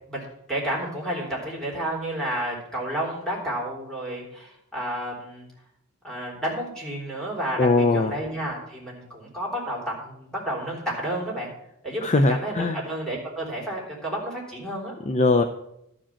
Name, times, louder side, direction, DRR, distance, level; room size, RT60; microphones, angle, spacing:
voice 1, 0.5-5.5 6.0-11.5 11.8-14.9, right 1 dB, 5° left, -5 dB, 3.5 m, -31 dB
voice 2, 7.6-8.1 12.0-12.8 15.1-15.4, left 2 dB, 30° left, 6 dB, 0.5 m, -20 dB
12.5 x 5.1 x 7.3 m, 0.78 s
head